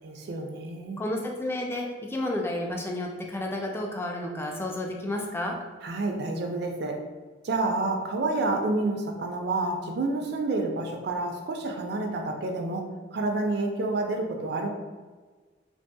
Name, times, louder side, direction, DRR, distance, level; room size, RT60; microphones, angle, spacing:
voice 1, 0.0-1.0 5.8-7.0 7.4-14.7, right 2 dB, 60° right, 3 dB, 0.4 m, -29 dB
voice 2, 1.0-5.6, left 1 dB, 10° left, 0 dB, 0.3 m, -31 dB
3.3 x 2.6 x 2.2 m, 1.4 s
head